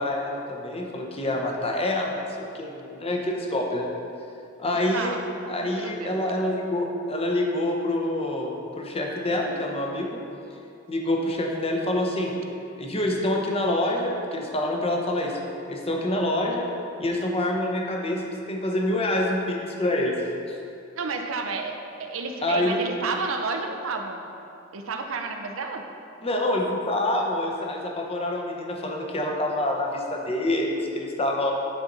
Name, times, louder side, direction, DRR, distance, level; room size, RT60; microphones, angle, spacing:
voice 1, 0.0-3.9 4.6-5.2 5.5-10.2 10.9-12.3 12.8-15.4 15.7-16.7 17.0-20.2 20.5-20.6 22.4-22.8 26.2-31.5, left 1 dB, 30° left, 0 dB, 0.8 m, -26 dB
voice 2, 4.7-5.2 5.6-6.2 20.9-21.7 22.0-24.2 24.7-25.8, right 4 dB, 75° right, 4 dB, 0.6 m, -31 dB
9.4 x 4.2 x 3.9 m, 2.6 s
head